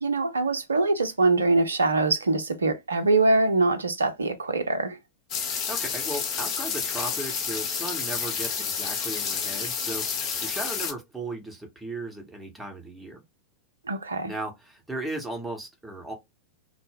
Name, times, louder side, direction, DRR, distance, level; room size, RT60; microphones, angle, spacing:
voice 1, 0.0-5.0 13.9-14.3, right 3 dB, 75° right, 0.5 m, -23 dB
sound 1, 5.3-10.9, left 6 dB, 40° left, 0.6 m, -30 dB
voice 2, 5.7-13.2 14.2-16.1, right 2 dB, 5° right, 0.8 m, -36 dB
2.0 x 2.0 x 3.3 m
figure-of-eight pair, 90°, 0 cm